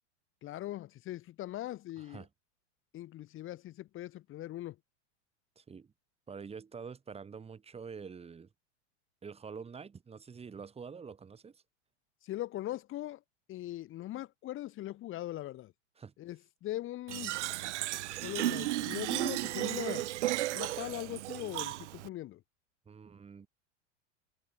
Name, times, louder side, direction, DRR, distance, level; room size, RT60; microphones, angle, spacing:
voice 1, 0.4-2.2 2.9-4.8 12.2-13.2 13.5-15.7 16.2-17.4 18.2-20.1 20.5-22.4, left 14 dB, 35° left, 3.2 m, -40 dB
voice 2, 2.0-2.3 5.6-5.9 6.3-8.5 9.2-11.6 16.0-16.1 22.9-23.5, right 6 dB, 15° right, 7.4 m, -46 dB
Fill (with liquid), 17.1-22.1, right 16 dB, 75° right, 2.3 m, -34 dB
supercardioid pair, 135°, 36 cm